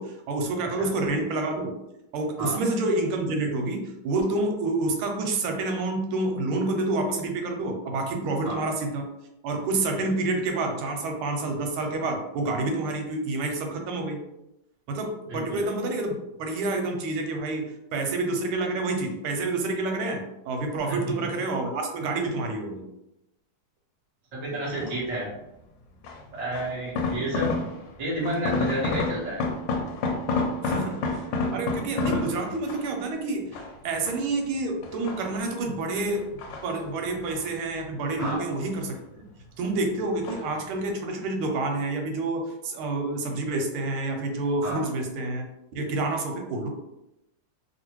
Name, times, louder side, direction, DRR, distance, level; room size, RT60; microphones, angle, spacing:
voice 1, 0.0-1.8 2.1-9.1 9.4-14.2 14.9-16.1 16.4-22.8 27.0-27.1 30.6-36.2 36.6-39.2 39.6-45.4 45.7-46.7, right 2 dB, 90° right, 3 dB, 1.5 m, -28 dB
voice 2, 15.3-15.7 20.8-21.1 24.3-25.3 26.3-27.6 28.0-29.5 38.2-38.5 44.6-44.8, right 1 dB, 35° right, -5 dB, 0.6 m, -31 dB
sound 1, 24.8-25.2 26.0-28.0 28.2-33.0 33.5-34.4 34.8-35.7 36.2-37.5 37.8-38.9 39.2-39.8 40.2-40.6 40.9-41.0, left 3 dB, 75° left, 1.2 m, -30 dB
3.1 x 2.7 x 2.9 m, 0.88 s
omnidirectional pair, 2.3 m